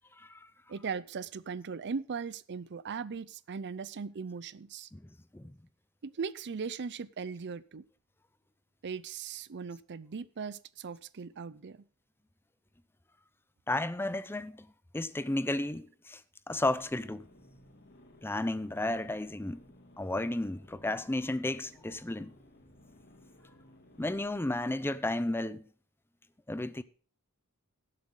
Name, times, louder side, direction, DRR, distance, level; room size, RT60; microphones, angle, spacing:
voice 1, 0.7-4.9 6.0-7.8 8.8-11.8, right 5 dB, 55° right, 0.5 m, -39 dB
voice 2, 4.9-5.5 13.7-14.7 14.9-16.2 16.5-17.3 18.2-19.6 20.0-22.3 24.0-25.7 26.5-26.8, left 1 dB, 10° left, 0.5 m, -33 dB
sound 1, 16.5-24.3, left 1 dB, 45° left, 2.6 m, -58 dB
17.5 x 7.7 x 3.8 m
head